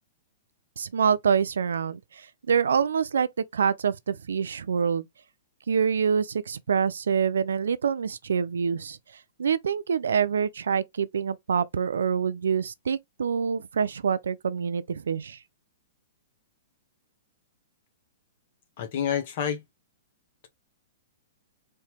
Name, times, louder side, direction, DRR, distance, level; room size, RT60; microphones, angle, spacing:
voice 1, 0.8-5.1 5.7-9.0 9.4-15.4, right 6 dB, 80° right, 0.4 m, -26 dB
voice 2, 18.8-19.6, left 8 dB, 55° left, 1.6 m, -28 dB
4.3 x 2.9 x 3.3 m
hypercardioid pair, 125°, 0 cm